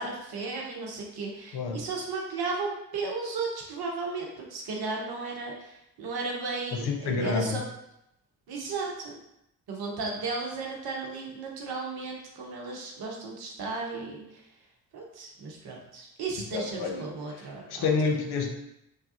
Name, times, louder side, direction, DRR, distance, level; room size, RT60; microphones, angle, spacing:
voice 1, 0.0-7.6 8.5-9.2 9.7-14.2 14.9-17.9, right 3 dB, 50° right, -1 dB, 0.9 m, -35 dB
voice 2, 6.7-7.6 16.4-18.5, left 4 dB, 55° left, 2 dB, 0.6 m, -29 dB
3.1 x 2.2 x 2.8 m, 0.81 s
figure-of-eight pair, 40°, 47 cm